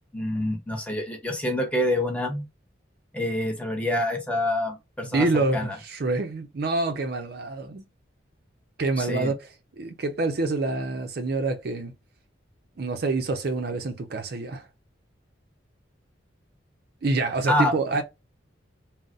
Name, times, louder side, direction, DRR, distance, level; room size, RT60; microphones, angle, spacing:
voice 1, 0.1-2.4 3.1-5.8 9.0-9.3 17.5-17.7, left 1 dB, 5° left, 0.8 m, -27 dB
voice 2, 5.0-7.8 8.8-11.9 12.8-14.7 17.0-18.0, right 3 dB, 55° right, 0.5 m, -27 dB
3.9 x 2.0 x 2.4 m
head